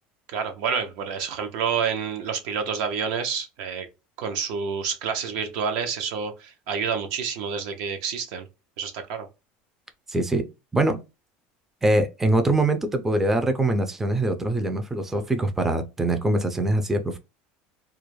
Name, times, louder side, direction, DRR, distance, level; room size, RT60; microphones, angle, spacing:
voice 1, 0.3-3.9 4.2-8.5 8.8-9.3, right 6 dB, 75° right, 0.6 m, -28 dB
voice 2, 10.1-10.5 10.7-11.0 11.8-17.2, right 1 dB, 10° right, 0.3 m, -23 dB
2.3 x 2.1 x 3.0 m
cardioid pair, 135°, 4 cm